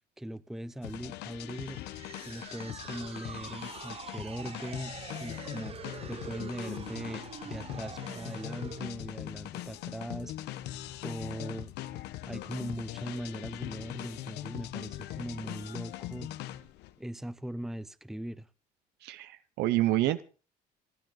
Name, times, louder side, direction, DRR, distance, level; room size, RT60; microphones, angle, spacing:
voice 1, 0.2-1.8 2.3-4.9 5.2-5.8 6.1-10.3 11.0-11.7 12.3-16.3 17.0-18.5, right 1 dB, ahead, 0.6 m, -40 dB
sound 1, 0.8-16.9, left 14 dB, 85° left, 1.1 m, -41 dB
sound 2, 1.5-8.9, right 6 dB, 35° right, 1.2 m, -45 dB
voice 2, 19.0-20.2, right 15 dB, 85° right, 0.8 m, -28 dB
27.5 x 9.4 x 3.9 m
cardioid pair, 110°, 17 cm